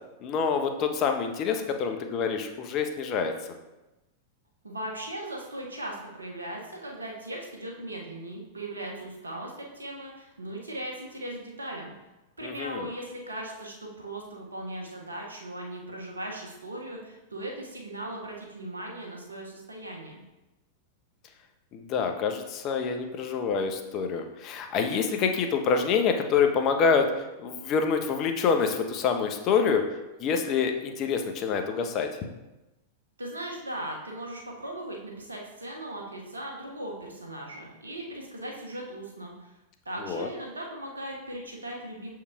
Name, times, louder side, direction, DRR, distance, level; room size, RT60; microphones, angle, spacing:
voice 1, 0.2-3.3 12.4-12.9 21.7-27.1 27.4-29.8 30.2-32.1 40.1-40.3, left 6 dB, 40° left, 5 dB, 0.9 m, -26 dB
voice 2, 4.6-11.9 12.4-20.2 33.2-39.5 39.8-42.1, right 1 dB, 85° right, -1 dB, 1.4 m, -38 dB
7.0 x 4.7 x 3.6 m, 1.0 s
figure-of-eight pair, 95°, 0 cm